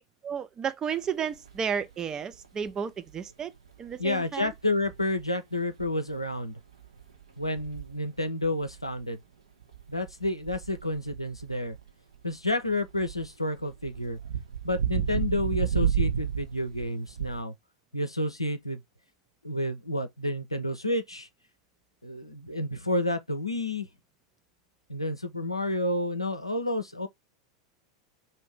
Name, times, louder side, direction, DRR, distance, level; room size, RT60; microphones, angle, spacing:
voice 1, 0.2-3.5 3.8-4.5, right 7 dB, 25° right, 0.4 m, -32 dB
sound 1, 1.0-1.1 1.3-1.9 2.3-2.7 3.1-3.2 3.6-4.2 4.4-5.3 5.7-6.4 6.7-9.0 9.6-17.4, right 8 dB, 70° right, 0.9 m, -32 dB
voice 2, 4.0-6.6 7.4-9.2 9.9-11.8 12.2-14.2 14.6-17.5 17.9-18.8 19.4-21.3 22.0-23.9 24.9-27.1, left 1 dB, 90° left, 0.5 m, -30 dB
2.6 x 2.6 x 3.3 m
figure-of-eight pair, 85°, 3 cm